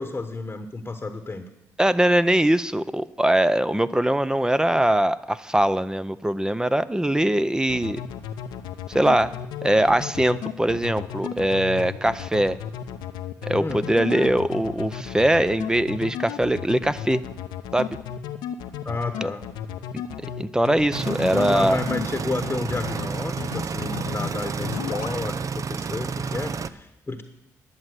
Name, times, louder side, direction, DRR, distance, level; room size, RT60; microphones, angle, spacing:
voice 1, 0.0-1.5 13.6-13.8 18.8-19.4 21.3-27.2, left 3 dB, 25° left, 8 dB, 1.1 m, -31 dB
voice 2, 1.8-8.0 8.9-9.3 9.6-12.6 13.4-17.2 17.7-18.0 19.2-19.3 20.4-21.8, right 1 dB, 10° right, 14 dB, 0.6 m, -22 dB
sound 1, 7.7-22.1 22.4-23.1 23.4-24.3 24.6-25.2, left 10 dB, 85° left, 0.8 m, -33 dB
sound 2, 20.9-26.7, right 5 dB, 50° right, 0.6 m, -30 dB
11.0 x 7.4 x 8.0 m, 0.88 s
supercardioid pair, 55°, 7 cm